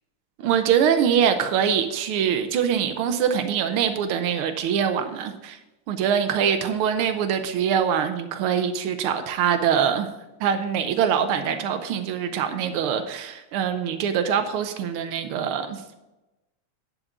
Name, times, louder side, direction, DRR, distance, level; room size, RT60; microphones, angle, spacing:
voice 1, 0.4-5.6 5.9-10.1 10.4-15.9, right 8 dB, 85° right, 7 dB, 1.7 m, -23 dB
11.0 x 5.3 x 5.9 m, 0.99 s
omnidirectional pair, 2.3 m